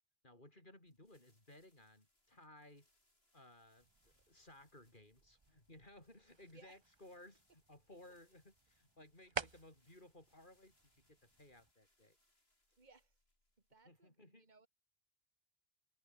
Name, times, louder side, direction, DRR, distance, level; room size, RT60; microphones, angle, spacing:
voice 1, 0.2-2.9 3.3-12.2 13.8-14.5, left 1 dB, 50° left, 6.2 m, -60 dB
sound 1, 0.9-14.0, left 1 dB, 75° left, 7.9 m, -80 dB
sound 2, 3.8-11.7, right 5 dB, 30° right, 0.7 m, -52 dB
voice 2, 12.8-13.2 13.7-14.7, right 3 dB, 45° right, 2.6 m, -65 dB
omnidirectional pair, 1.0 m